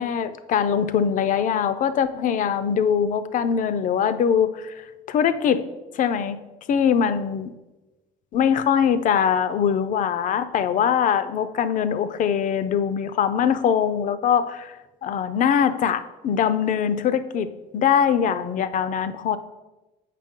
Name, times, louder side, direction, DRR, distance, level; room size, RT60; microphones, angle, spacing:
voice 1, 0.0-4.8 5.1-5.6 5.9-6.4 6.7-7.5 8.3-19.4, left 8 dB, 50° left, 12 dB, 0.5 m, -22 dB
7.5 x 5.2 x 3.7 m, 1.1 s
cardioid pair, 110°, 17 cm